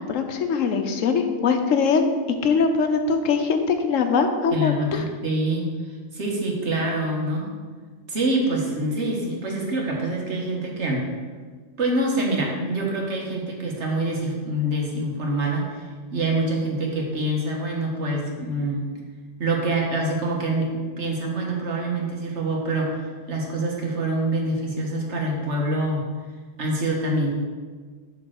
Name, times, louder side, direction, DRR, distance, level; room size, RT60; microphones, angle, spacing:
voice 1, 0.0-2.1 2.4-5.0, left 5 dB, 85° left, 6 dB, 1.1 m, -22 dB
voice 2, 4.5-7.5 8.1-11.1 11.8-15.8 16.1-18.9 19.4-26.1 26.6-27.3, right 1 dB, 65° right, -1 dB, 1.6 m, -25 dB
7.6 x 3.8 x 6.4 m, 1.5 s
omnidirectional pair, 1.3 m